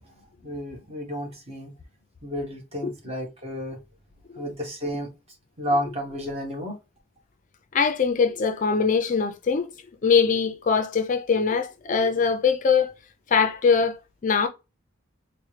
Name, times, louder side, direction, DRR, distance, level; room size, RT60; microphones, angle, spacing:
voice 1, 0.4-1.7 2.2-3.8 4.3-5.1 5.6-6.8, equal, 30° right, 1.0 m, -31 dB
voice 2, 7.7-9.7 10.0-12.9 13.3-14.5, left 5 dB, 35° left, 0.4 m, -22 dB
4.3 x 2.1 x 3.2 m
head